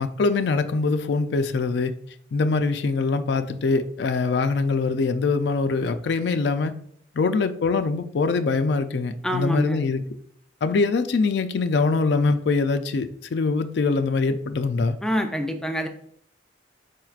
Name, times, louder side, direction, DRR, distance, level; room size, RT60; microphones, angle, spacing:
voice 1, 0.0-1.9 2.3-6.7 7.2-10.0 10.6-15.0, left 4 dB, 70° left, 9 dB, 0.4 m, -23 dB
voice 2, 9.2-9.8 15.0-15.9, equal, 5° left, 4 dB, 0.4 m, -26 dB
4.9 x 4.5 x 2.4 m, 0.63 s
head